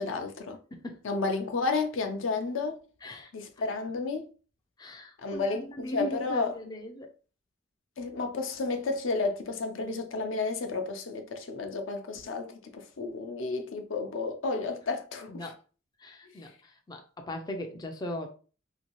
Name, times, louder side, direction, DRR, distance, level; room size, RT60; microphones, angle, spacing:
voice 1, 0.0-0.6 1.0-2.8 3.3-4.3 5.2-6.5 8.0-15.4, left 3 dB, 75° left, 0.6 m, -32 dB
voice 2, 3.0-3.3 4.8-7.1 15.3-15.6 16.0-18.3, left 1 dB, 20° left, 0.3 m, -38 dB
2.8 x 2.6 x 2.9 m
head